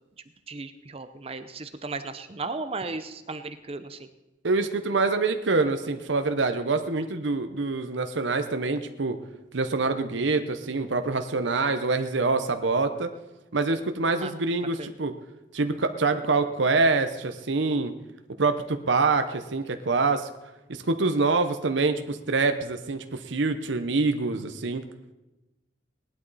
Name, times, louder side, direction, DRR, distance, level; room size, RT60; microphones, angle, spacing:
voice 1, 0.5-4.1 14.2-14.3 14.8-14.9, right 3 dB, 30° right, 10 dB, 0.7 m, -35 dB
voice 2, 4.4-9.2 9.5-13.1 13.5-15.1 15.5-17.9 18.4-20.3 20.7-24.8, right 3 dB, 75° right, 8 dB, 0.9 m, -25 dB
18.5 x 11.5 x 4.1 m, 1.0 s
head